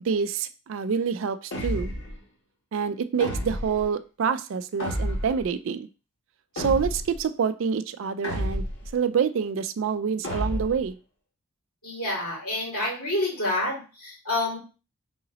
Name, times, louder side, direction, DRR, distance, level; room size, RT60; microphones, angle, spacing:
voice 1, 0.0-1.9 2.7-5.9 6.6-8.7 8.9-11.0, right 6 dB, 60° right, 12 dB, 0.3 m, -27 dB
sound 1, 1.5-2.2 3.2-3.8 4.8-5.5 6.6-7.2 8.2-8.9 10.2-10.9, equal, 55° left, 1.2 m, -30 dB
voice 2, 11.8-14.6, left 1 dB, 80° left, -5 dB, 2.5 m, -28 dB
3.8 x 2.9 x 3.9 m, 0.34 s
head